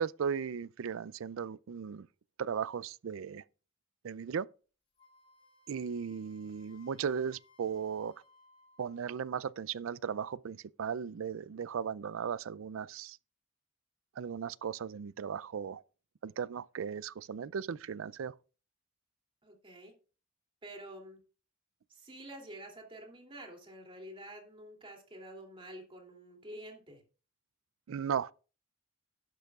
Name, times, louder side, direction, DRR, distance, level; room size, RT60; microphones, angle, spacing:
voice 1, 0.0-2.1 2.4-3.4 4.0-4.5 5.7-8.1 8.8-13.2 14.2-15.8 16.2-18.3 27.9-28.3, right 7 dB, 85° right, 0.4 m, -36 dB
Wind instrument woodwind instrument, 5.0-9.1, left 2 dB, 30° left, 2.5 m, -64 dB
voice 2, 19.4-19.9 20.6-21.2 21.9-27.0, right 1 dB, 25° right, 2.9 m, -48 dB
12.0 x 10.5 x 2.4 m
head